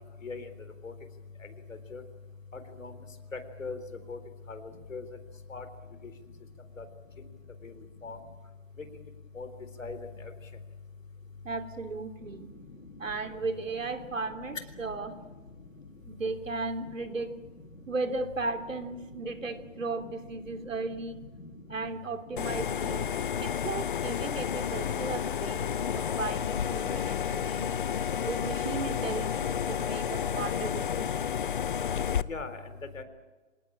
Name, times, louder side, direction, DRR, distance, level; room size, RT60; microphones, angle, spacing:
voice 1, 3.3-3.8 4.1-4.2 4.5-4.6 4.9-5.0 5.5-5.6 6.8-6.9 7.6-7.7 8.0-8.2 9.4-9.5 9.8-10.0 12.9-13.0 14.5-14.6 19.1-19.3 20.0-20.1 20.4-20.5 21.4-21.5 32.3-32.6 32.9-33.0, left 4 dB, 85° left, 9 dB, 4.0 m, -39 dB
voice 2, 11.4-12.5 13.0-15.2 16.0-17.4 17.9-21.2 21.7-23.1 23.4-27.8 28.2-31.3, right 3 dB, 80° right, 7 dB, 3.2 m, -36 dB
sound 1, 22.4-32.2, left 8 dB, 40° left, 0.7 m, -31 dB
26.0 x 19.0 x 8.8 m, 1.3 s
hypercardioid pair, 155°, 38 cm